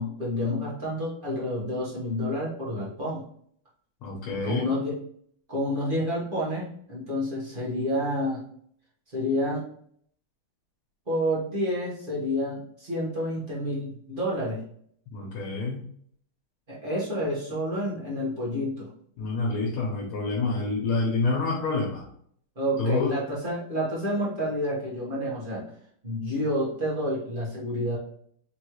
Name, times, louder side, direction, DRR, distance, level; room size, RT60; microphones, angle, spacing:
voice 1, 0.0-3.2 4.4-5.0 5.5-8.4 9.1-9.6 11.1-14.6 16.7-18.9 22.5-25.7 26.0-28.0, equal, 30° right, -7 dB, 1.2 m, -29 dB
voice 2, 4.0-4.7 15.1-15.8 19.2-22.1 22.8-23.1, left 3 dB, 80° left, -1 dB, 1.7 m, -27 dB
4.2 x 3.1 x 3.0 m, 0.64 s
omnidirectional pair, 2.3 m